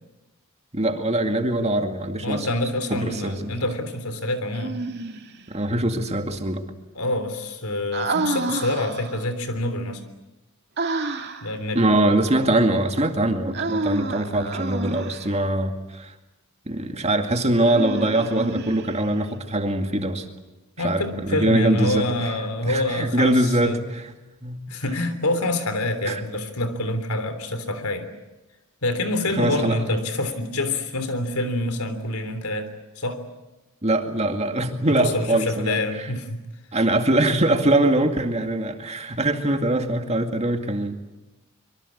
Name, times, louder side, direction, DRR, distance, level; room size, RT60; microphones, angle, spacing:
voice 1, 0.7-2.5 2.9-3.5 5.5-6.6 11.7-16.1 16.7-20.3 20.8-22.3 22.7-24.2 24.4-24.6 26.0-26.2 29.4-29.8 33.8-36.1 36.7-40.9, right 1 dB, 30° right, 5 dB, 2.2 m, -23 dB
voice 2, 2.2-4.8 7.0-10.0 11.4-11.8 20.8-23.8 24.7-28.1 28.8-32.7 33.0-33.2 34.9-36.4, left 1 dB, 85° left, 10 dB, 3.4 m, -26 dB
Human voice, 4.5-5.4 7.9-9.3 10.8-11.5 13.5-15.3 17.6-19.2, right 3 dB, 50° right, 2.3 m, -29 dB
25.0 x 23.5 x 8.6 m, 1.0 s
head